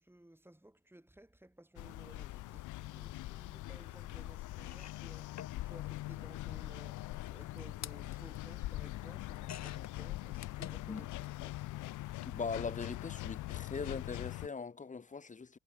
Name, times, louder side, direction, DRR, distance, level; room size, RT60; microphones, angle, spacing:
voice 1, 0.0-11.6, right 1 dB, 5° right, 5.1 m, -57 dB
sound 1, 1.8-14.5, left 17 dB, 80° left, 0.7 m, -42 dB
sound 2, 4.1-4.2 4.6-11.3 11.6-12.4 13.4-13.6 13.8-13.9, left 10 dB, 60° left, 2.5 m, -53 dB
voice 2, 12.2-15.6, left 5 dB, 25° left, 1.3 m, -40 dB
cardioid pair, 90°, 30 cm